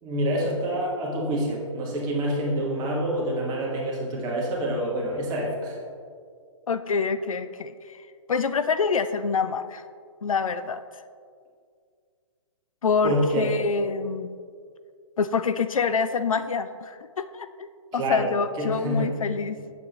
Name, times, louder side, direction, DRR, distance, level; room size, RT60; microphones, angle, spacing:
voice 1, 0.0-5.8 13.0-13.5 17.9-18.3 18.6-19.1, equal, 25° right, -3 dB, 1.7 m, -27 dB
voice 2, 6.7-8.0 8.3-9.8 10.2-10.8 12.8-14.4 15.2-19.6, left 5 dB, 85° left, 12 dB, 0.4 m, -26 dB
8.0 x 6.8 x 3.0 m, 2.1 s
figure-of-eight pair, 130°, 17 cm